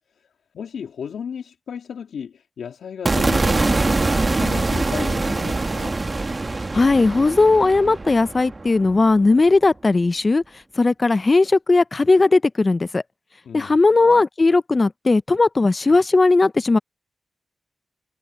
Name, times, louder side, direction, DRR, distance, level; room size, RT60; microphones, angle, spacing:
voice 1, 0.5-6.0 13.4-13.7, left 7 dB, 85° left, 2.9 m, -34 dB
sound 1, 3.1-9.3, right 3 dB, 40° right, 1.9 m, -23 dB
voice 2, 6.7-10.4 10.8-13.0 13.5-16.8, left 3 dB, 45° left, 0.7 m, -17 dB
cardioid pair, 45°, 0 cm